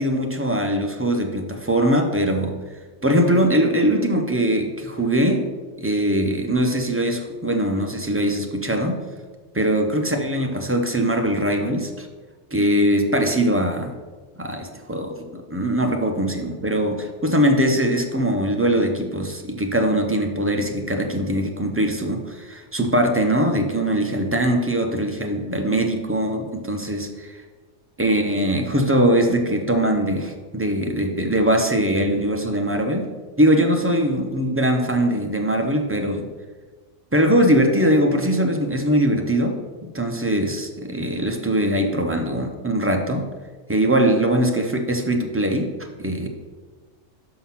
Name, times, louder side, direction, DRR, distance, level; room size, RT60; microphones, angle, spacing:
voice 1, 0.0-2.5 3.0-5.4 5.8-9.0 9.5-12.1 12.5-14.0 14.4-15.1 15.5-27.4 28.0-33.1 33.4-36.2 37.1-39.5 39.9-43.3 43.7-45.7 46.0-46.3, right 1 dB, 15° right, 3 dB, 0.4 m, -21 dB
5.7 x 5.6 x 5.8 m, 1.4 s
omnidirectional pair, 1.3 m